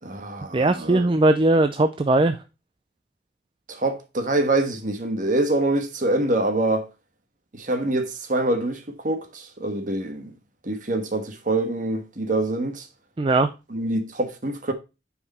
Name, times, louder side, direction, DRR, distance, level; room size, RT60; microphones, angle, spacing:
voice 1, 0.0-1.1 3.7-6.9 7.5-10.3 10.6-12.9 13.7-14.7, right 2 dB, 50° right, 1.4 m, -25 dB
voice 2, 0.5-2.4 13.2-13.5, right 2 dB, 30° right, 0.4 m, -19 dB
8.7 x 4.9 x 4.2 m
head